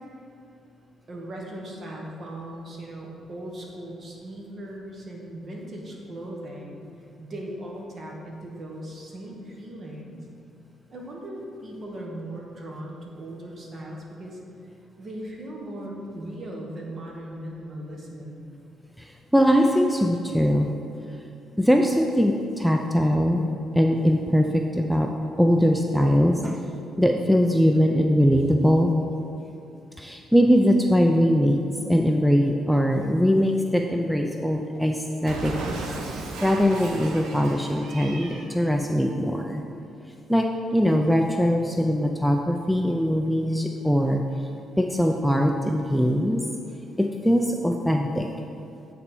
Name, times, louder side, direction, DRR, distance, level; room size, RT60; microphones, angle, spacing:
voice 1, 1.1-6.8 7.2-10.2 10.9-14.4 15.0-18.4, right 1 dB, 45° right, -1 dB, 1.3 m, -38 dB
voice 2, 19.3-20.7 21.6-23.5 23.7-25.1 25.4-26.6 27.0-28.9 30.0-31.6 31.9-35.6 36.4-39.6 40.3-44.2 44.8-46.4 47.0-48.3, equal, ahead, 3 dB, 0.4 m, -21 dB
Cat, 35.2-38.5, right 2 dB, 85° right, 0.8 m, -35 dB
8.5 x 4.2 x 4.3 m, 2.7 s
cardioid pair, 90°, 0 cm